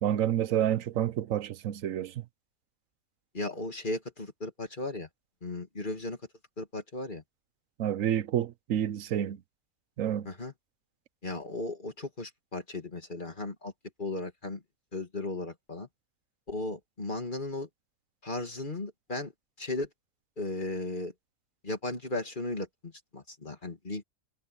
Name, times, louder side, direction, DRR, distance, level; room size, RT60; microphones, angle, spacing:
voice 1, 0.0-2.2 7.8-9.4 10.0-10.3, right 10 dB, 75° right, 1.1 m, -29 dB
voice 2, 3.3-5.1 5.4-6.2 6.6-7.2 10.2-10.5 11.2-13.7 14.0-14.6 14.9-15.9 16.5-17.7 18.2-19.3 19.6-19.9 20.4-21.1 21.6-24.0, left 2 dB, 35° left, 2.6 m, -36 dB
omnidirectional pair, 1.4 m